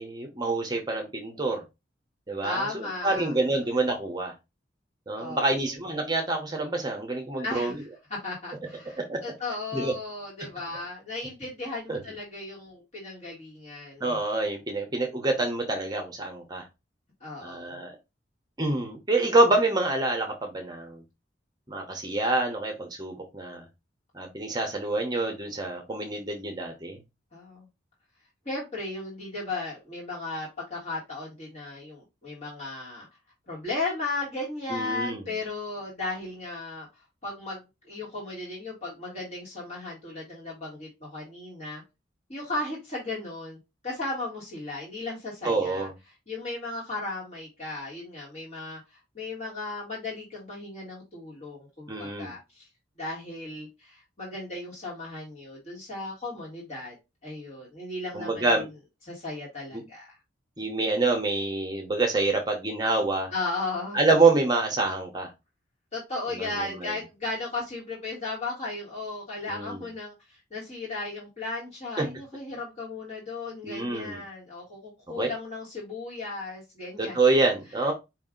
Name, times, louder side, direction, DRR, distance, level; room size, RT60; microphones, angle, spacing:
voice 1, 0.0-1.6 2.3-4.3 5.1-7.8 9.1-9.2 9.7-9.9 11.9-12.0 14.0-16.6 17.4-17.9 18.6-21.0 21.7-23.6 24.1-27.0 34.7-35.2 45.4-45.9 51.9-52.3 58.1-58.7 59.7-59.8 60.6-63.3 63.9-65.3 66.4-66.5 66.8-66.9 69.5-69.8 72.0-72.1 73.6-74.2 75.2-75.3 77.0-77.9, right 2 dB, 20° right, 0.7 m, -26 dB
voice 2, 2.4-3.3 5.2-5.7 7.4-14.2 17.2-17.8 27.3-27.7 28.4-33.1 33.5-36.9 37.2-41.8 42.3-45.9 46.3-52.7 53.0-56.9 57.2-58.6 59.1-60.1 63.3-64.0 65.9-77.2, left 2 dB, 35° left, 1.6 m, -36 dB
4.8 x 2.7 x 3.7 m
head